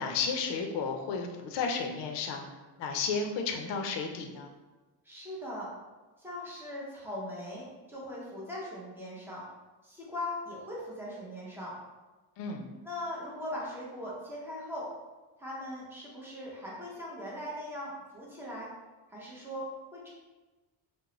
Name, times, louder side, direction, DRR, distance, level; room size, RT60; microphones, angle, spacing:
voice 1, 0.0-2.4 2.8-4.5 12.4-12.6, left 5 dB, 70° left, 4 dB, 0.5 m, -33 dB
voice 2, 5.0-5.7 6.2-9.4 9.8-11.7 12.8-14.9 15.4-18.7 19.1-20.1, left 1 dB, 5° right, -6 dB, 0.5 m, -40 dB
3.7 x 2.0 x 2.9 m, 1.2 s
cardioid pair, 180°, 43 cm